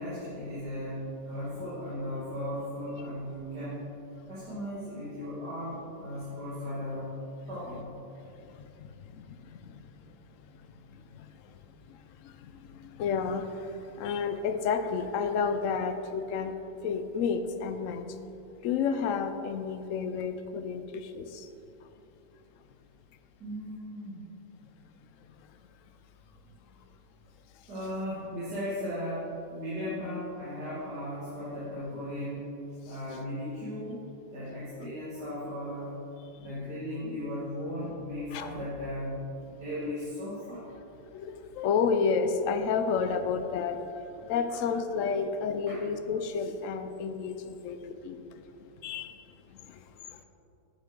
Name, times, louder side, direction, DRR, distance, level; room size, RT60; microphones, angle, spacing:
voice 1, 0.0-3.8 4.3-7.1 7.5-7.9 23.4-24.3 27.7-32.4 32.8-34.0 34.3-35.9 36.4-39.2 39.5-40.6 45.7-45.8, left 1 dB, 65° right, -11 dB, 2.6 m, -36 dB
voice 2, 8.5-9.8 11.2-11.3 11.9-12.0 12.2-16.6 16.8-18.0 18.6-21.5 38.3-38.5 41.1-43.8 44.2-48.3 48.8-49.2 49.6-49.8, left 5 dB, 70° left, 9 dB, 0.7 m, -31 dB
9.7 x 8.7 x 3.8 m, 2.8 s
omnidirectional pair, 1.9 m